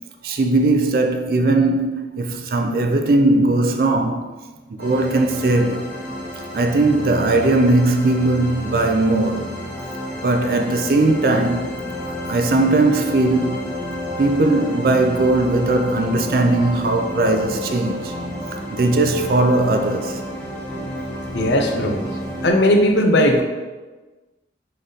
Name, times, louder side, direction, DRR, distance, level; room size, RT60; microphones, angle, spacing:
voice 1, 0.2-4.3 4.8-5.9 6.5-9.5 10.2-11.7 12.3-13.6 14.2-18.1 18.7-20.2, right 2 dB, 55° right, 0.4 m, -18 dB
sound 1, 4.8-22.5, equal, 10° left, 0.9 m, -30 dB
voice 2, 21.3-22.0 22.4-23.4, left 1 dB, 75° left, 0.6 m, -17 dB
3.9 x 3.3 x 3.9 m
head